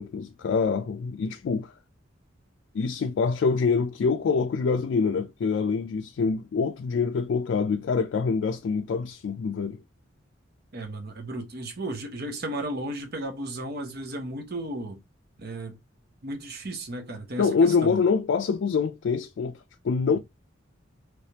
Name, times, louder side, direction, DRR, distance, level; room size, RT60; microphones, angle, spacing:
voice 1, 0.0-1.7 2.7-9.8 17.4-19.6 19.8-20.2, left 5 dB, 65° left, 0.3 m, -25 dB
voice 2, 10.7-15.0 15.4-15.8 16.2-18.0 20.1-20.2, right 1 dB, 55° right, 0.9 m, -34 dB
3.3 x 3.1 x 2.7 m
head